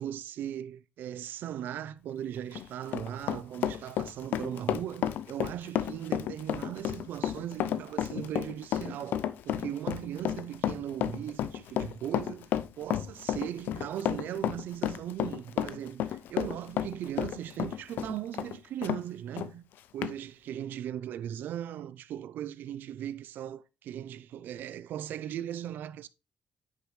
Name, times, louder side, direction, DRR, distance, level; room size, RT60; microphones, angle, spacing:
voice 1, 0.0-19.6 19.9-26.1, right 10 dB, 80° right, 0.4 m, -38 dB
Run, 2.4-19.0 19.4-19.5 20.0-20.1, left 11 dB, 85° left, 0.5 m, -32 dB
9.5 x 5.1 x 3.2 m
cardioid pair, 85°, 3 cm